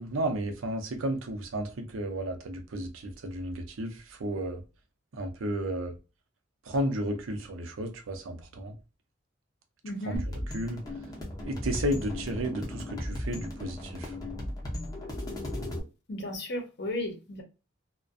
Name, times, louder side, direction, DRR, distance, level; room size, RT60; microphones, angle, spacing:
voice 1, 0.0-4.6 5.1-5.9 6.7-8.7 10.0-10.2 10.5-10.8 11.5-14.1, right 1 dB, 80° right, 0.6 m, -33 dB
voice 2, 9.8-10.2 16.1-17.4, left 1 dB, 55° left, 0.6 m, -34 dB
sound 1, 10.2-15.8, left 1 dB, 20° left, 0.6 m, -36 dB
2.4 x 2.1 x 2.5 m
head